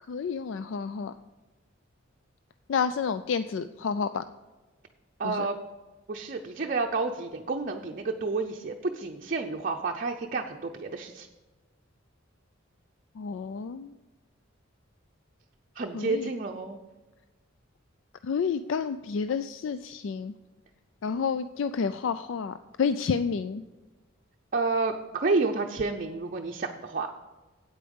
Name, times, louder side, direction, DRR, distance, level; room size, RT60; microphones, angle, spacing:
voice 1, 0.1-1.1 2.7-4.2 5.2-5.5 13.2-13.9 15.9-16.3 18.2-20.3 21.0-23.6, left 6 dB, 70° left, 12 dB, 0.4 m, -30 dB
voice 2, 5.2-5.6 6.1-11.3 15.8-16.8 24.5-27.1, right 3 dB, 45° right, 2 dB, 0.6 m, -30 dB
8.7 x 8.5 x 5.3 m, 1.2 s
head